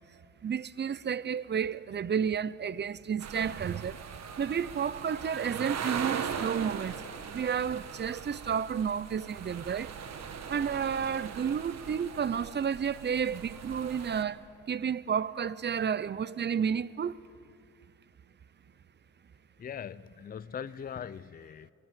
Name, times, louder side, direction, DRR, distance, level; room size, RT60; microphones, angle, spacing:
voice 1, 0.4-4.0 4.4-6.9 7.3-9.9 10.5-14.4 14.7-17.2, right 7 dB, 35° right, 0.7 m, -31 dB
sound 1, 3.2-14.2, right 7 dB, 60° right, 1.8 m, -40 dB
voice 2, 19.6-21.7, left 7 dB, 30° left, 0.5 m, -41 dB
28.0 x 20.0 x 7.7 m
cardioid pair, 90°, 30 cm